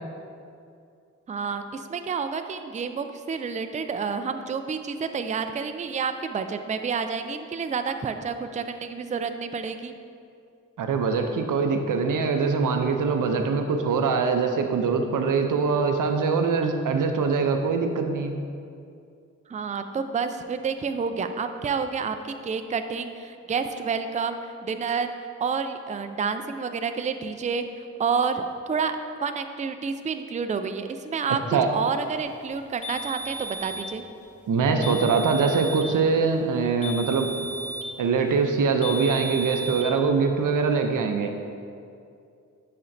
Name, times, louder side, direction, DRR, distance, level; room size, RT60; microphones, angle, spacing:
voice 1, 1.3-9.9 19.5-25.1 25.4-27.6 28.0-31.4 31.7-34.0, right 5 dB, 25° right, 8 dB, 0.4 m, -29 dB
voice 2, 10.8-18.3 31.5-31.7 34.5-37.3 38.0-41.3, right 5 dB, 80° right, 5 dB, 0.5 m, -23 dB
sound 1, 32.8-33.9 34.8-35.9 36.8-38.0 38.8-39.9, right 1 dB, 25° left, 1.2 m, -34 dB
9.7 x 4.3 x 2.6 m, 2.4 s
cardioid pair, 45°, 31 cm